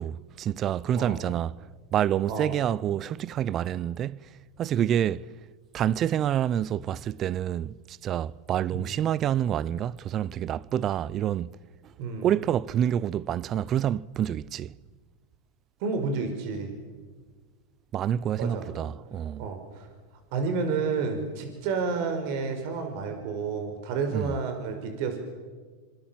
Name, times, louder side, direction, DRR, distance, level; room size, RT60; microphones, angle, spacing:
voice 1, 0.0-1.5 1.9-4.3 4.6-5.3 5.7-11.5 11.8-11.9 12.2-14.7 17.9-19.5 24.1-24.4, right 10 dB, 35° right, 0.7 m, -27 dB
voice 2, 12.0-12.3 15.8-16.7 18.4-18.6 19.4-19.9 20.3-25.2, right 4 dB, 60° right, 5.3 m, -30 dB
26.5 x 26.0 x 7.7 m
hypercardioid pair, 120°, 0 cm